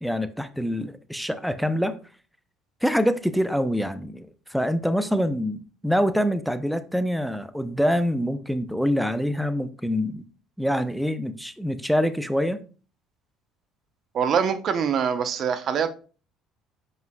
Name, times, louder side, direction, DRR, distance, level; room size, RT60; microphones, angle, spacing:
voice 1, 0.0-2.0 2.8-10.2 10.6-12.6, equal, ahead, 0.6 m, -25 dB
voice 2, 14.1-15.9, right 7 dB, 55° right, 0.7 m, -24 dB
7.6 x 5.5 x 2.2 m
supercardioid pair, 80°, 0 cm